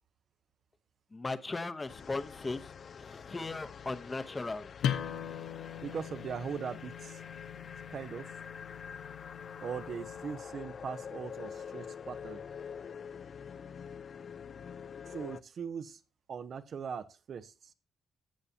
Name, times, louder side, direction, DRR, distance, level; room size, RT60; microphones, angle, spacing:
voice 1, 1.1-4.7, left 3 dB, 25° left, 12 dB, 0.8 m, -38 dB
sound 1, 1.9-15.4, left 7 dB, 50° left, 0.3 m, -46 dB
sound 2, 4.8-10.2, left 9 dB, 85° left, 0.9 m, -40 dB
voice 2, 5.8-7.2 7.9-8.3 9.6-12.4 15.1-16.0 16.3-17.7, right 6 dB, 55° right, 11 dB, 0.7 m, -40 dB
13.5 x 7.1 x 2.8 m, 0.32 s
cardioid pair, 90°, 0 cm